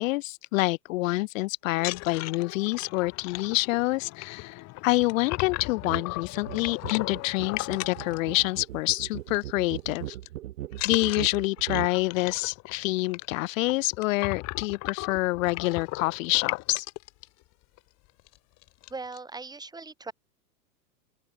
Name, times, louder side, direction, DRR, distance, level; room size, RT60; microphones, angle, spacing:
voice 1, 0.0-10.1 10.8-16.9, left 21 dB, 55° left, 1.0 m, -27 dB
sound 1, 1.8-8.9 9.2-9.4 9.7-10.3 10.7-17.1 17.8-17.9 18.2-18.4 18.6-19.2, left 22 dB, 35° left, 0.9 m, -37 dB
sound 2, 5.8-6.1 6.3-12.0, right 14 dB, 70° right, 5.5 m, -38 dB
voice 2, 18.9-20.1, right 3 dB, 10° right, 2.4 m, -39 dB
open air
hypercardioid pair, 105°, 47 cm